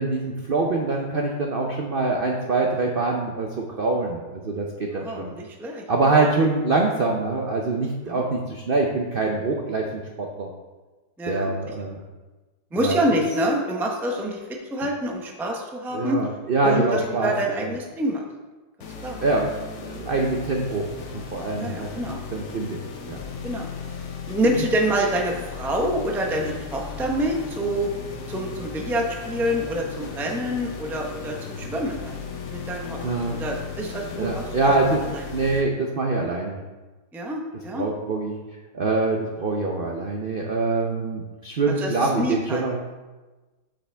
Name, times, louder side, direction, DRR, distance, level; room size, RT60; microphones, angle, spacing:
voice 1, 0.0-5.3 5.9-10.5 11.3-12.0 12.7-13.0 15.9-17.3 17.6-17.7 19.2-21.9 22.3-22.8 23.1-23.2 24.5-24.7 33.0-33.4 34.2-35.0 35.3-36.6 37.7-38.4 38.7-42.8, right 3 dB, 70° right, 0 dB, 0.5 m, -24 dB
voice 2, 4.9-5.8 6.3-6.4 8.1-8.2 11.2-11.5 12.7-14.4 14.7-16.2 16.6-18.2 19.0-19.2 21.6-22.2 23.4-23.7 24.3-27.9 28.3-32.2 32.5-33.0 33.3-34.7 35.1-35.2 37.1-37.8 41.8-42.6, right 1 dB, 5° right, 0 dB, 0.3 m, -26 dB
sound 1, 18.8-35.6, left 5 dB, 50° left, 0.9 m, -36 dB
7.7 x 7.2 x 3.4 m, 1.2 s
omnidirectional pair, 2.0 m